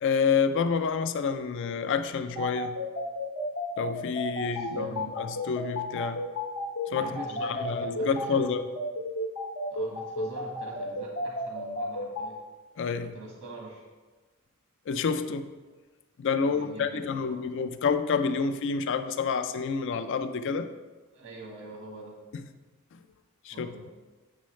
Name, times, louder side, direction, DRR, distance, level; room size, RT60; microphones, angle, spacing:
voice 1, 0.0-2.8 3.8-6.3 6.9-7.1 7.4-8.6 12.8-13.1 14.9-15.5 16.2-20.7 23.5-23.7, left 5 dB, 60° left, 9 dB, 0.4 m, -28 dB
sound 1, 2.3-12.3, left 1 dB, 80° left, 1.0 m, -32 dB
voice 2, 4.4-5.2 7.0-8.6 9.7-12.4 13.0-13.9 16.4-17.5 21.1-22.2 23.5-23.9, right 2 dB, 75° right, -2 dB, 1.3 m, -44 dB
7.4 x 6.3 x 3.1 m, 1.3 s
head